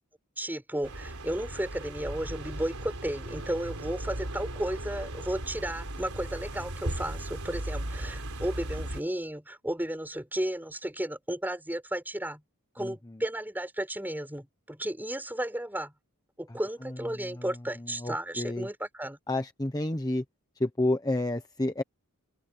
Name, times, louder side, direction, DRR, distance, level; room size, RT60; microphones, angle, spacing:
voice 1, 0.4-12.4 12.8-15.9 16.4-19.2, right 1 dB, 10° right, 5.4 m, -34 dB
sound 1, 0.8-9.0, right 1 dB, 80° right, 4.0 m, -37 dB
voice 2, 12.8-13.2 16.5-16.6 16.8-17.4 17.8-18.7 19.3-20.2 20.6-21.8, left 1 dB, 15° left, 1.1 m, -30 dB
open air
head